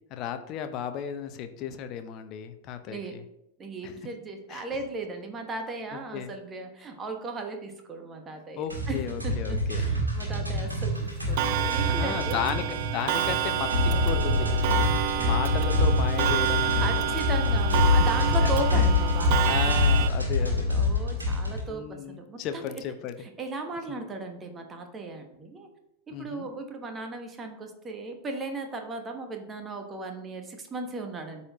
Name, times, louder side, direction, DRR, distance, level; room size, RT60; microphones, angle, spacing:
voice 1, 0.1-3.2 3.8-4.0 4.5-4.7 6.1-6.3 8.6-9.8 11.9-14.5 15.2-17.1 18.4-18.9 19.5-20.7 21.7-23.2 23.9-24.0 26.1-26.5, left 9 dB, 40° left, 9 dB, 0.7 m, -34 dB
voice 2, 2.9-3.2 3.6-12.7 16.8-20.0 20.4-22.6 23.2-25.7 26.1-31.4, right 2 dB, 20° right, 5 dB, 1.1 m, -37 dB
sound 1, 8.7-21.6, left 2 dB, 80° right, 2.0 m, -25 dB
Clock, 11.4-20.1, right 11 dB, 50° right, 0.4 m, -29 dB
12.5 x 4.2 x 3.0 m, 0.82 s
figure-of-eight pair, 90°, 0 cm